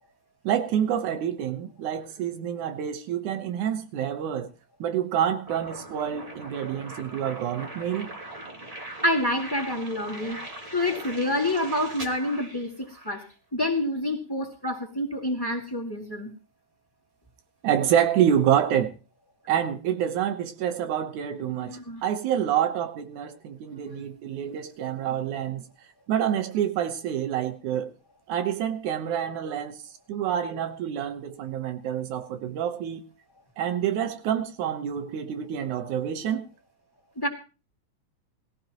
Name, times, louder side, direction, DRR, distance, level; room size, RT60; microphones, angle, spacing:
voice 1, 0.4-4.5 4.8-8.1 17.6-18.9 19.5-25.6 26.1-27.9 28.3-29.8 30.1-33.0 33.6-36.5, right 9 dB, 75° right, 2.6 m, -27 dB
sound 1, 5.5-13.3, right 1 dB, 20° right, 1.0 m, -41 dB
voice 2, 9.0-10.4 10.7-13.3 13.5-16.3 21.4-22.0 23.7-24.1 37.2-37.3, left 1 dB, 10° left, 1.8 m, -28 dB
20.5 x 15.5 x 3.0 m
omnidirectional pair, 3.5 m